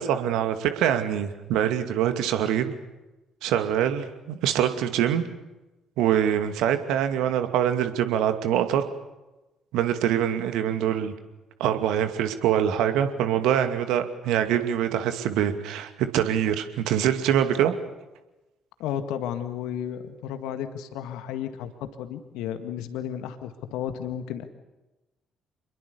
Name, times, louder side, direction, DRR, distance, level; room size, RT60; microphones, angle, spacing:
voice 1, 0.0-2.7 3.4-5.2 6.0-8.8 9.7-11.1 11.6-17.7, right 10 dB, 60° right, 8 dB, 2.3 m, -24 dB
voice 2, 18.8-21.7 22.0-24.5, left 9 dB, 60° left, 9 dB, 1.8 m, -33 dB
28.5 x 22.0 x 7.0 m, 1.0 s
figure-of-eight pair, 45°, 0 cm